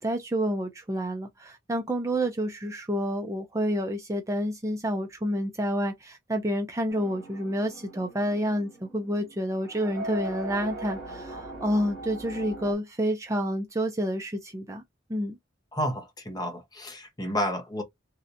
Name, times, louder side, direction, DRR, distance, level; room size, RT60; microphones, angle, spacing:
voice 1, 0.0-14.8 15.1-15.4, equal, 15° right, 0.4 m, -29 dB
sound 1, 6.9-12.7, right 2 dB, ahead, 1.7 m, -40 dB
voice 2, 15.7-17.8, equal, 20° left, 0.7 m, -31 dB
3.2 x 2.7 x 2.6 m
head